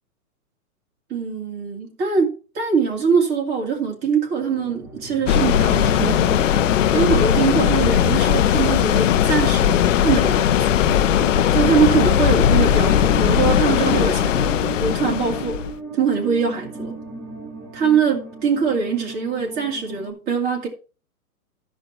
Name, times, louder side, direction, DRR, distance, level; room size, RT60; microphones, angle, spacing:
voice 1, 1.1-6.5 6.9-9.8 10.0-10.6 11.5-15.6 15.9-16.9 17.7-20.7, right 6 dB, 20° right, 2.4 m, -22 dB
sound 1, 4.4-20.1, right 3 dB, 5° right, 3.3 m, -34 dB
sound 2, 5.3-15.7, left 10 dB, 55° left, 0.7 m, -18 dB
13.5 x 5.3 x 4.3 m
hypercardioid pair, 150°, 45 cm